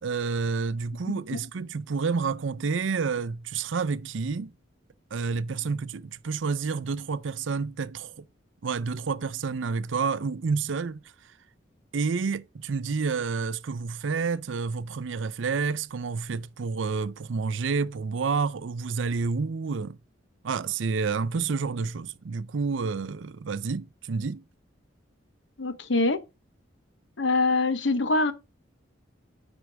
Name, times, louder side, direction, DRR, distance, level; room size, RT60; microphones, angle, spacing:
voice 1, 0.0-4.5 5.1-8.2 8.6-11.0 11.9-20.0 20.4-24.4, right 5 dB, 75° right, 0.5 m, -29 dB
voice 2, 25.6-26.2 27.2-28.3, left 3 dB, 70° left, 1.0 m, -24 dB
9.5 x 4.4 x 4.6 m
head